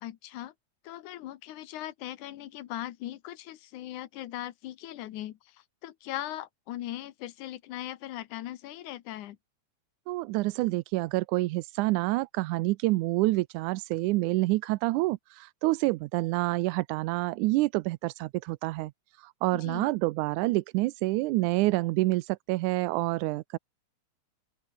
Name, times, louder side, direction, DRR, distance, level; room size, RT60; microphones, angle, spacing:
voice 1, 0.0-0.5 0.8-9.4 19.5-19.9, left 13 dB, 80° left, 2.6 m, -39 dB
voice 2, 10.1-18.9 19.2-23.6, right 20 dB, 85° right, 2.0 m, -27 dB
open air
omnidirectional pair, 3.4 m